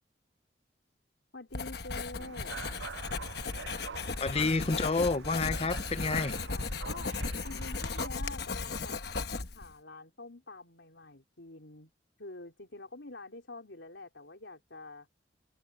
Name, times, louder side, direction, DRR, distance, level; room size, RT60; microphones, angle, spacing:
voice 1, 1.3-2.5 6.2-9.0 9.5-11.9 12.2-15.1, left 2 dB, 85° left, 3.6 m, -46 dB
Writing, 1.5-9.7, left 4 dB, 60° left, 1.1 m, -36 dB
sound 1, 2.2-8.1, right 6 dB, 85° right, 0.5 m, -46 dB
voice 2, 4.2-6.3, left 3 dB, 35° left, 0.7 m, -29 dB
head